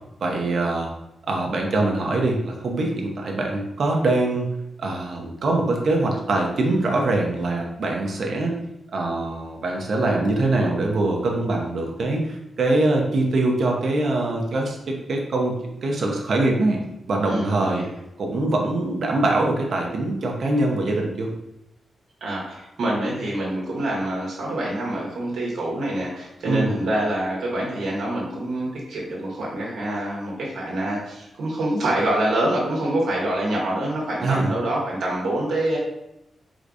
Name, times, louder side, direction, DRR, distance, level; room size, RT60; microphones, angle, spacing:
voice 1, 0.2-0.9 1.3-4.5 4.8-8.6 8.9-17.8 18.2-21.3 26.4-26.8 34.2-34.5, right 2 dB, 50° right, 0 dB, 0.9 m, -23 dB
voice 2, 17.3-17.8 22.2-35.8, right 1 dB, 70° right, -4 dB, 1.3 m, -26 dB
4.8 x 3.9 x 2.6 m, 0.87 s
wide cardioid pair, 155°, 0 cm